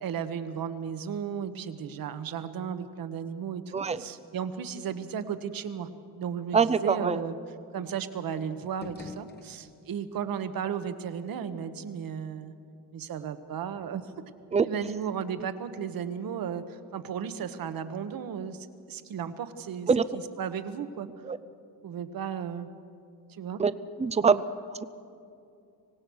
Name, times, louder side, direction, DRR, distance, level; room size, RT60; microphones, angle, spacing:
voice 1, 0.0-5.9 6.1-7.3 7.7-12.5 12.9-14.1 14.6-21.1 21.8-22.7 23.3-23.6, right 7 dB, 55° right, 11 dB, 1.2 m, -35 dB
voice 2, 6.5-7.2 14.5-14.7 19.9-20.0 21.3-21.4 23.6-23.7 24.0-24.4 24.8-24.9, right 5 dB, 15° right, 15 dB, 0.5 m, -23 dB
sound 1, 8.6-10.1, left 3 dB, 25° left, 1.0 m, -46 dB
25.0 x 18.5 x 6.4 m, 2.5 s
cardioid pair, 155°, 42 cm